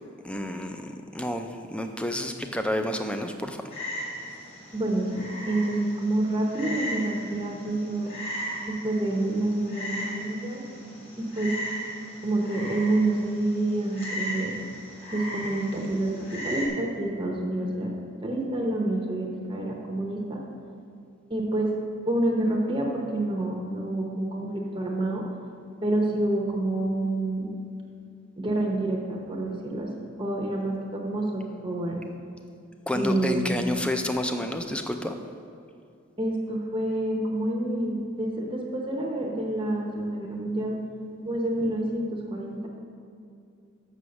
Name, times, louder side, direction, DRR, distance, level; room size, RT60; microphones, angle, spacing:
voice 1, 0.2-3.6 32.9-35.1, left 1 dB, 5° left, 6 dB, 0.4 m, -29 dB
Frog, 3.7-16.7, equal, 30° left, 1.4 m, -37 dB
voice 2, 4.7-8.1 8.7-10.6 11.2-11.5 12.2-14.5 15.1-17.9 18.2-20.4 21.3-21.7 22.1-25.2 25.8-27.5 28.4-32.0 32.9-33.6 36.2-40.8 41.2-42.7, right 1 dB, 25° right, 0 dB, 0.7 m, -28 dB
6.4 x 6.1 x 6.9 m, 2.5 s
head